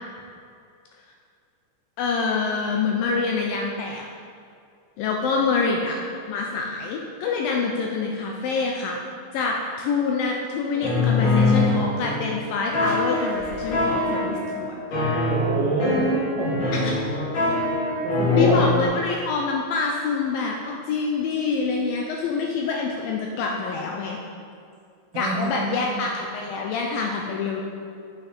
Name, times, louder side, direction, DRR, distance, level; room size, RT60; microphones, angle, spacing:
voice 1, 2.0-4.0 5.0-6.0 6.3-9.0 9.3-14.7 16.7-16.9 18.3-24.2 25.1-27.6, left 4 dB, 80° left, 0 dB, 2.2 m, -26 dB
sound 1, 10.7-12.4 12.7-14.6 14.9-18.9, left 2 dB, 60° left, 3.5 m, -23 dB
voice 2, 15.3-16.6 18.0-18.6 25.1-26.0, right 2 dB, 75° right, -2 dB, 2.1 m, -26 dB
8.3 x 5.7 x 4.3 m, 2.4 s
omnidirectional pair, 4.5 m